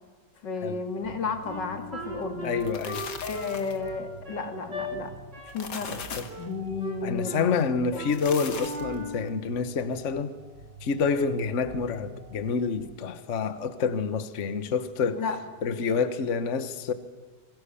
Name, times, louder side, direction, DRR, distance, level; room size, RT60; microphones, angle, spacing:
voice 1, 0.4-2.6 3.2-5.1 5.5-6.0 6.4-8.0 15.1-15.4, left 4 dB, 90° left, 2.9 m, -33 dB
sound 1, 1.0-12.9, right 1 dB, 40° right, 3.8 m, -47 dB
Wind instrument woodwind instrument, 1.4-4.9 5.3-5.6 5.8-6.5 6.8-7.6 7.9-8.2 8.5-9.2, equal, 80° right, 5.5 m, -38 dB
sound 2, 2.4-3.9 5.3-6.4 8.0-9.0, left 6 dB, 70° left, 2.3 m, -39 dB
voice 2, 2.4-3.1 5.9-6.3 7.0-10.3 10.8-15.2 15.6-16.9, left 5 dB, 45° left, 1.4 m, -28 dB
27.0 x 22.5 x 7.0 m
omnidirectional pair, 1.9 m